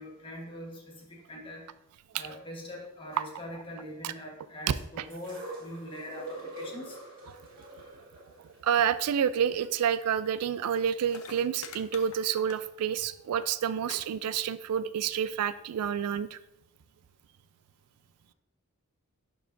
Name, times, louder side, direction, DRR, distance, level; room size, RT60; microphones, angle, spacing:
voice 1, 0.0-1.7 2.1-7.0, left 1 dB, 25° left, -1 dB, 1.3 m, -43 dB
sound 1, 5.1-11.1 12.0-12.1, right 1 dB, 40° right, 2.1 m, -45 dB
voice 2, 8.6-16.4, right 8 dB, 85° right, 15 dB, 0.3 m, -29 dB
sound 2, 10.8-10.9 11.0-13.0 13.2-13.5 13.8-14.0 14.3-14.8 15.6-15.7, left 4 dB, 75° left, 0.7 m, -46 dB
11.0 x 4.7 x 2.6 m, 0.88 s
head